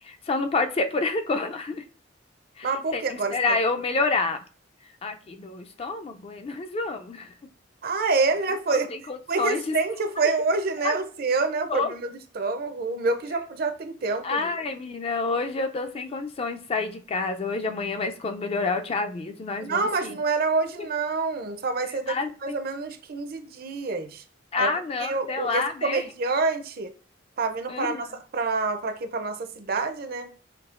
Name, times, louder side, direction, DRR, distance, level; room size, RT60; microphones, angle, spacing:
voice 1, 0.0-1.8 2.6-4.4 5.0-7.3 8.7-9.7 10.8-11.0 11.7-11.9 14.2-20.2 22.1-22.6 24.5-26.0 27.7-28.1, left 3 dB, 30° left, 0.3 m, -28 dB
voice 2, 2.6-3.6 7.8-8.9 9.3-14.5 19.6-24.2 24.6-24.7 25.0-26.9 27.4-30.3, right 3 dB, 55° right, 0.5 m, -27 dB
5.8 x 2.7 x 2.4 m
head